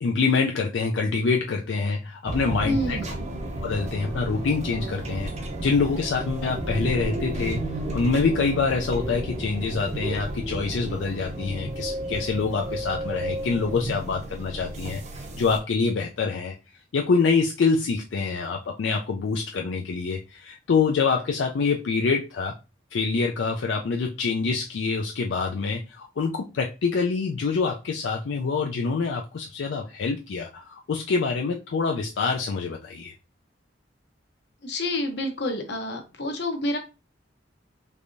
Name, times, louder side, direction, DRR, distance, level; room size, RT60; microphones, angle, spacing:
voice 1, 0.0-3.0 3.6-5.3 5.6-7.6 7.9-16.5 16.9-22.5 22.9-33.1, left 4 dB, 85° left, 2 dB, 0.4 m, -26 dB
sound 1, 2.2-15.6, right 1 dB, 40° right, 0.6 m, -32 dB
voice 2, 2.6-3.1 34.6-36.8, left 1 dB, 65° left, 5 dB, 0.8 m, -28 dB
3.4 x 3.3 x 2.5 m, 0.29 s
head